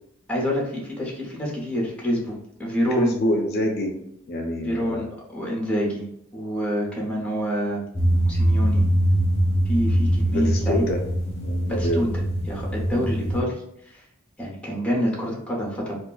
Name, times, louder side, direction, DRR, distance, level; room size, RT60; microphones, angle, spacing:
voice 1, 0.3-3.1 4.6-5.0 5.3-6.0 6.3-7.8 8.3-8.8 9.6-10.8 11.8-12.1 12.4-14.0 14.4-16.0, equal, 5° left, -3 dB, 0.8 m, -27 dB
voice 2, 2.9-3.9 4.3-5.1 10.3-11.1 11.4-12.1, left 1 dB, 55° left, 2 dB, 0.4 m, -26 dB
sound 1, 7.9-13.4, right 1 dB, 30° left, 0.8 m, -22 dB
2.4 x 2.2 x 3.8 m, 0.74 s
head